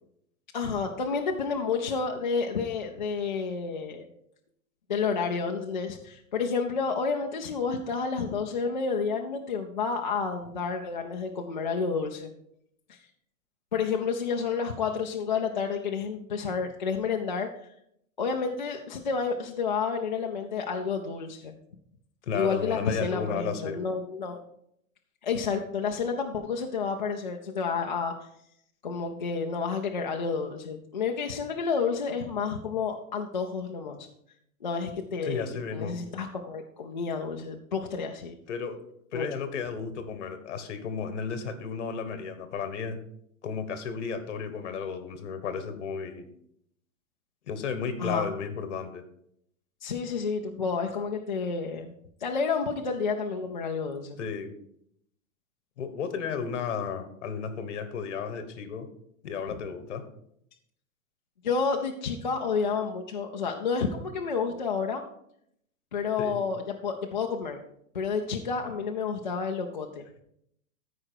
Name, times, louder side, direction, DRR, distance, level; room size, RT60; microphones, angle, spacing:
voice 1, 0.5-4.1 4.9-12.3 12.9-13.1 13.7-17.7 18.2-21.5 22.3-24.4 25.2-28.3 28.8-34.1 34.6-38.4 39.1-39.3 48.0-48.3 49.8-51.9 52.2-54.2 61.4-65.0 65.9-67.6 67.9-70.1, left 5 dB, 35° left, 1 dB, 0.4 m, -30 dB
voice 2, 22.2-23.8 35.2-36.0 38.5-38.8 39.1-43.0 43.4-46.3 47.5-49.0 54.2-54.5 55.8-58.9 59.2-60.0 66.2-66.4, left 6 dB, 55° left, 10 dB, 1.4 m, -33 dB
13.5 x 4.9 x 4.5 m, 0.74 s
hypercardioid pair, 175°, 43 cm